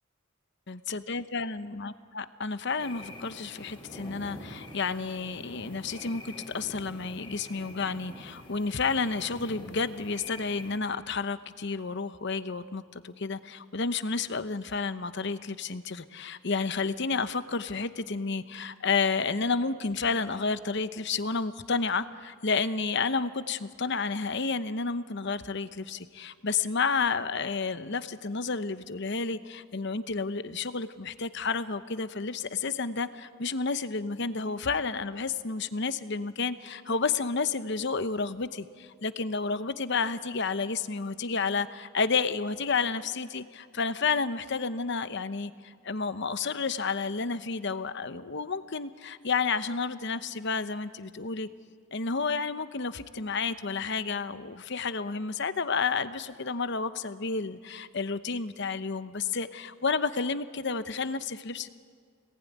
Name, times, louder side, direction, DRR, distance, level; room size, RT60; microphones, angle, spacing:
voice 1, 0.7-51.5 51.9-61.8, left 4 dB, 55° left, 12 dB, 0.9 m, -31 dB
sound 1, 2.8-10.8, left 1 dB, 25° left, 3.3 m, -46 dB
27.0 x 19.5 x 9.4 m, 2.1 s
head